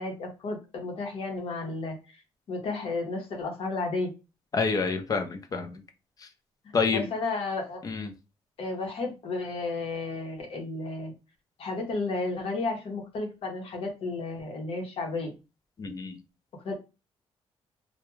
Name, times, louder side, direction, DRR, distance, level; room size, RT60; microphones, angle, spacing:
voice 1, 0.0-2.2 2.5-4.1 6.9-7.8 8.6-11.1 11.6-15.3 16.6-16.7, left 3 dB, 60° left, 2 dB, 0.9 m, -32 dB
voice 2, 4.5-5.8 6.2-6.3 6.7-7.1 7.8-8.1 15.8-16.2, left 4 dB, 35° left, 7 dB, 0.5 m, -28 dB
2.3 x 2.2 x 3.0 m, 0.29 s
cardioid pair, 130°, 11 cm